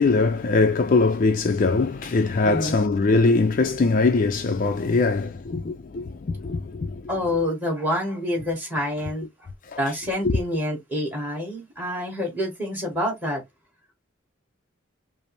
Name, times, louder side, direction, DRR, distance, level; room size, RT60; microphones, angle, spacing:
voice 1, 0.0-7.1 10.2-10.3, left 3 dB, 40° left, 0.4 m, -21 dB
voice 2, 2.4-2.8 7.1-9.5 9.8-13.4, left 1 dB, 10° right, 1.8 m, -27 dB
5.1 x 2.0 x 3.1 m
head